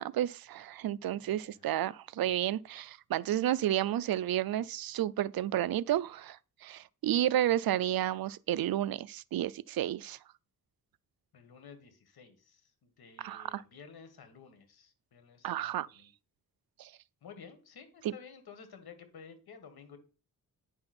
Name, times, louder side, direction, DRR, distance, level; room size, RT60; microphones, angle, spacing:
voice 1, 0.0-10.2 13.2-13.6 15.4-15.9 16.8-16.9, right 12 dB, 70° right, 0.5 m, -31 dB
voice 2, 0.8-1.6 11.3-16.1 17.2-20.0, left 6 dB, 85° left, 1.8 m, -53 dB
9.7 x 5.7 x 4.3 m
cardioid pair, 95°, 36 cm